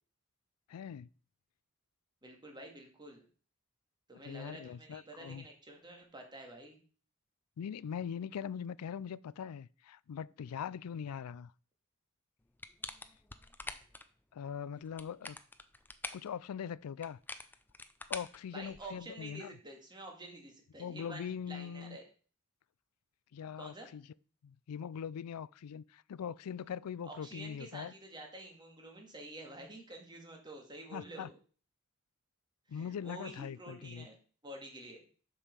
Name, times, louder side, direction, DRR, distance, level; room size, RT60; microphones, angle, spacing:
voice 1, 0.7-1.1 4.2-5.4 7.6-11.5 14.3-15.4 16.1-17.2 18.1-19.5 20.8-22.0 23.3-24.0 24.4-27.9 30.9-31.3 32.7-34.1, left 7 dB, 90° left, 0.4 m, -41 dB
voice 2, 2.2-3.3 4.1-6.8 18.5-22.0 23.6-23.9 27.0-31.3 32.7-34.1 34.4-35.0, right 1 dB, 20° right, 2.1 m, -49 dB
sound 1, 12.6-14.0 14.8-16.3 17.0-19.0, left 2 dB, 10° left, 0.5 m, -45 dB
7.2 x 5.4 x 6.7 m
head